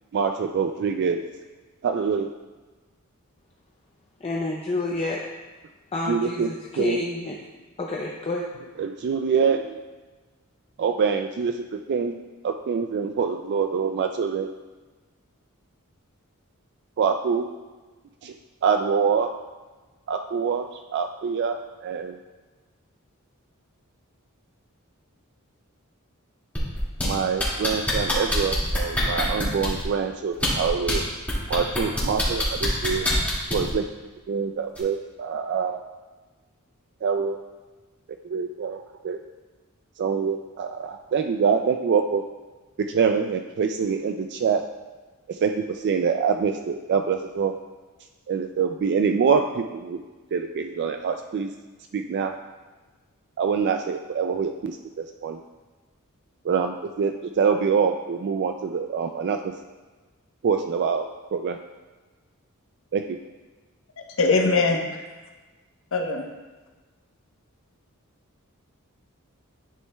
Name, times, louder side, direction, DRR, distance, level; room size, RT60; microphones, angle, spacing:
voice 1, 0.1-1.2 1.8-2.3 6.1-6.5 6.8-7.0 8.8-9.8 10.8-12.2 12.4-14.5 17.0-17.5 18.2-18.3 18.6-19.3 20.1-22.2 27.0-31.0 31.5-33.1 33.5-33.9 34.3-35.8 37.0-37.4 38.2-39.2 40.0-42.2 42.8-44.6 45.3-47.5 48.3-50.0 50.3-51.5 51.9-52.3 53.4-55.4 56.4-59.5 60.4-61.1 61.3-61.6 62.9-63.2, right 6 dB, 50° right, 6 dB, 0.3 m, -25 dB
voice 2, 4.2-5.2 5.9-7.4 7.8-8.5, left 2 dB, 25° left, -2 dB, 0.6 m, -28 dB
sound 1, 26.6-27.1 27.4-29.8 30.3-30.9 31.3-33.7 34.8-34.9, left 1 dB, 5° left, 2.0 m, -25 dB
voice 3, 64.2-65.0 65.9-66.2, left 3 dB, 65° left, 2 dB, 0.9 m, -21 dB
10.5 x 6.3 x 2.2 m, 1.3 s
head